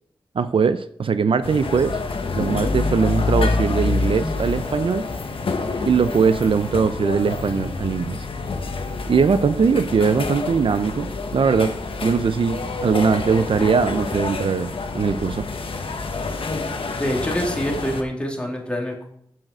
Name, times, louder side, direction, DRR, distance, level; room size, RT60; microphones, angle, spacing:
voice 1, 0.3-2.0 2.3-5.1 5.9-8.2 9.1-15.5, right 5 dB, 75° right, 12 dB, 0.5 m, -21 dB
sound 1, 1.4-18.0, left 3 dB, 80° left, 1.1 m, -27 dB
voice 2, 16.9-19.1, equal, 10° left, 0 dB, 2.4 m, -26 dB
7.7 x 7.5 x 4.9 m, 0.70 s
wide cardioid pair, 60°, 9 cm